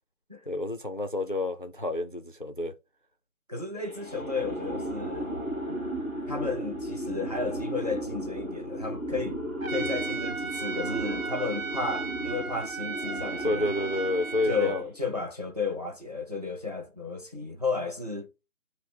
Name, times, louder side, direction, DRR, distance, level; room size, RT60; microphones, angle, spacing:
voice 1, 0.5-2.7 13.4-14.8, left 1 dB, 40° left, 0.4 m, -29 dB
voice 2, 3.5-5.3 5.7-5.8 6.3-9.4 9.7-13.7 14.5-18.3, left 3 dB, 30° right, 0.5 m, -33 dB
sound 1, 3.8-15.0, right 1 dB, 5° right, 1.4 m, -35 dB
Trumpet, 9.6-14.8, right 5 dB, 70° right, 1.0 m, -36 dB
5.2 x 2.0 x 4.8 m
figure-of-eight pair, 150°, 42 cm